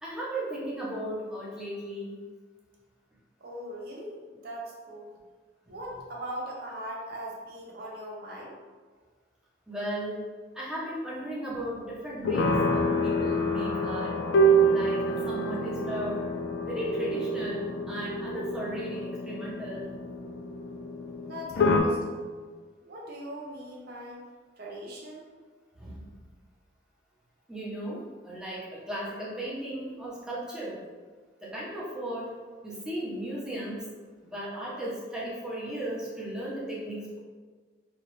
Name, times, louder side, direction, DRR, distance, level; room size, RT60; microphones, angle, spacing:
voice 1, 0.0-2.2 9.7-10.2 10.5-14.1 14.7-16.2 16.6-19.9 25.8-26.1 27.5-30.8 31.4-32.3 32.6-33.8 34.2-37.2, equal, 5° right, -7 dB, 0.7 m, -36 dB
voice 2, 3.4-5.1 5.7-8.6 21.2-22.2 22.8-24.2 24.6-25.2, equal, 55° right, -3 dB, 0.7 m, -40 dB
sound 1, 12.2-21.8, right 1 dB, 65° left, 0.3 m, -27 dB
2.8 x 2.3 x 3.1 m, 1.5 s
head